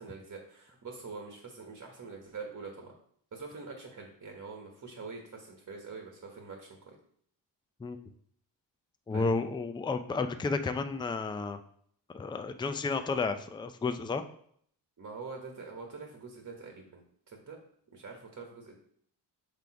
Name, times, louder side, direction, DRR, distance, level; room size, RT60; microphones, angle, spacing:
voice 1, 0.0-2.9 3.3-7.0 9.1-9.3 15.0-17.6 17.9-18.7, right 4 dB, 40° right, 1 dB, 1.2 m, -45 dB
voice 2, 9.1-11.6 12.1-14.2, left 4 dB, 10° left, 9 dB, 0.3 m, -32 dB
5.9 x 3.4 x 4.7 m, 0.63 s
cardioid pair, 110°, 44 cm